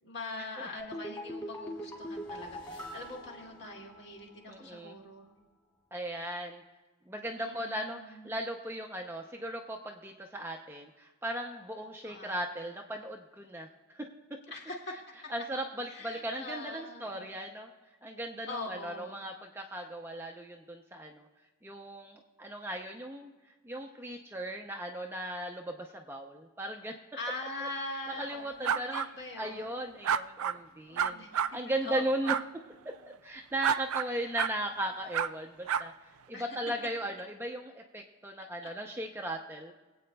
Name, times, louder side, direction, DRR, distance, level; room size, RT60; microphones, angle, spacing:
voice 1, 0.0-5.4 7.4-8.3 12.0-12.3 14.5-15.0 15.2-15.3 15.9-17.3 18.4-19.2 27.2-29.7 30.9-32.1 34.1-34.3 36.3-36.4 38.6-38.7, left 2 dB, 50° left, -1 dB, 2.2 m, -43 dB
sound 1, 0.8-4.2 4.5-4.6, equal, 20° left, 2.5 m, -42 dB
voice 2, 4.5-5.0 5.9-6.6 7.1-14.1 15.3-17.7 18.0-21.3 21.6-23.3 23.6-26.9 27.6-27.7 28.2-29.0 29.4-32.4 32.8-32.9 33.2-39.7, right 1 dB, 10° right, 2 dB, 0.5 m, -37 dB
sound 2, 28.6-29.1 30.0-30.6 31.0-31.5 32.3-32.4 33.6-34.1 34.4-34.5 35.1-35.3 35.7-35.8, right 8 dB, 85° right, 0.4 m, -29 dB
23.5 x 8.5 x 2.2 m, 1.2 s
head